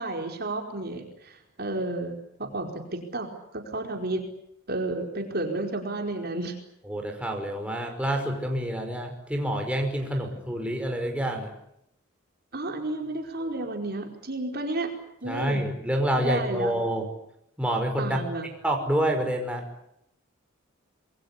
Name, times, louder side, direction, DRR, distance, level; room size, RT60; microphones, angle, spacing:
voice 1, 0.0-4.2 4.7-6.5 10.2-10.3 12.5-14.9 15.2-15.7 16.1-16.7 18.0-18.5, right 2 dB, 50° right, 3 dB, 4.8 m, -32 dB
voice 2, 6.9-11.5 15.2-17.1 17.6-18.2 18.6-19.6, right 1 dB, 5° right, 2 dB, 5.4 m, -27 dB
27.5 x 22.0 x 8.5 m, 0.76 s
head